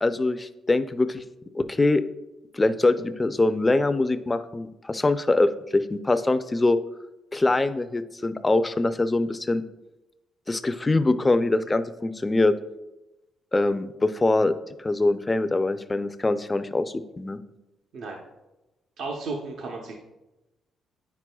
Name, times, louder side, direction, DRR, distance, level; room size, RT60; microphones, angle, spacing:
voice 1, 0.0-1.2 1.5-2.0 2.5-6.8 7.3-9.6 10.5-12.5 13.5-14.5 14.8-17.4, left 2 dB, 20° left, 11 dB, 0.4 m, -23 dB
voice 2, 19.0-20.0, right 3 dB, 70° right, 0 dB, 0.8 m, -33 dB
9.3 x 6.1 x 2.3 m, 1.0 s
cardioid pair, 90°, 0 cm